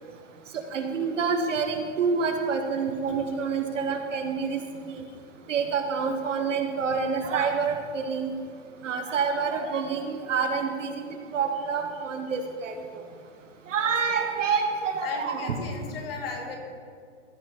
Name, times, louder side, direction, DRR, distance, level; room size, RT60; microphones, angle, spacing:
voice 1, 0.7-4.6 4.9-5.0 5.5-8.3 8.8-12.7 13.7-15.5, right 5 dB, 90° right, 5 dB, 1.3 m, -27 dB
voice 2, 15.0-16.6, left 4 dB, 50° left, 2 dB, 1.8 m, -36 dB
14.0 x 5.6 x 4.0 m, 2.2 s
hypercardioid pair, 165°, 37 cm